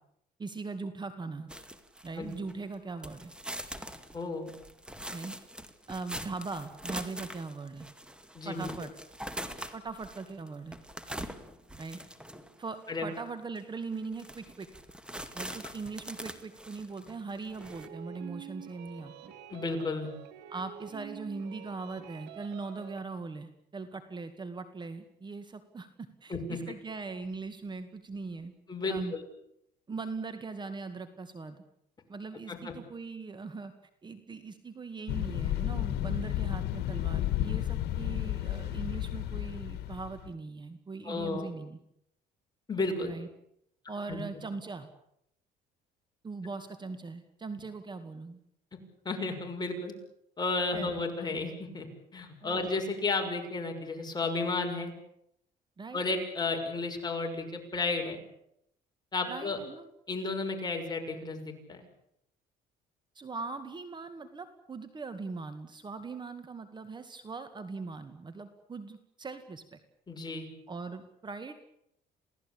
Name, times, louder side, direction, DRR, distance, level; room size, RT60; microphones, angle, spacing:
voice 1, 0.4-1.5 2.0-3.3 5.1-5.3 5.9-7.9 8.5-8.9 9.7-10.8 11.8-12.0 12.6-14.7 15.3-19.3 20.5-28.5 28.9-29.1 29.9-31.6 32.1-33.7 34.0-41.8 43.0-43.3 43.9-44.9 46.2-48.4 50.7-51.0 52.4-52.7 55.8-56.0 59.3-59.9 63.2-69.8 70.7-71.5, right 4 dB, 25° right, 10 dB, 2.0 m, -40 dB
sound 1, 1.5-2.7 3.0-12.6 13.1-13.2 13.6-13.7 14.0-17.9, right 1 dB, 5° right, 2.2 m, -43 dB
voice 2, 4.1-4.5 8.3-8.7 12.9-13.1 19.5-20.1 26.3-26.6 28.7-29.2 32.5-32.7 41.0-41.5 42.7-43.1 44.1-44.2 48.7-48.8 49.0-49.9 50.4-51.9 52.1-54.9 55.9-58.2 59.1-59.6 60.1-61.8 70.1-70.5, left 3 dB, 25° left, 3 dB, 6.4 m, -33 dB
sound 2, 17.6-23.1, right 9 dB, 85° right, 3.4 m, -47 dB
sound 3, 35.1-40.3, left 13 dB, 80° left, 1.8 m, -32 dB
28.5 x 17.5 x 8.7 m, 0.76 s
cardioid pair, 110°, 17 cm